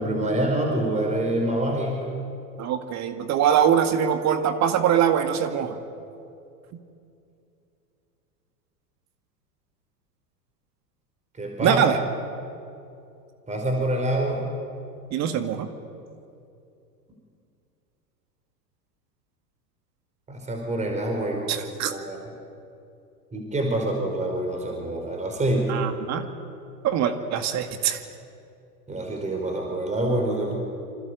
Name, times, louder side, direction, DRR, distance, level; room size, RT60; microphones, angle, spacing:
voice 1, 0.0-2.1 11.4-11.8 13.5-14.4 20.3-21.6 21.9-22.2 23.3-25.7 28.9-30.6, right 1 dB, 15° right, 1 dB, 4.9 m, -26 dB
voice 2, 2.6-5.8 11.6-11.9 15.1-15.7 21.5-21.9 25.7-26.3 26.8-28.0, right 9 dB, 35° right, 8 dB, 2.0 m, -23 dB
27.5 x 26.0 x 8.2 m, 2.6 s
figure-of-eight pair, 90°, 50 cm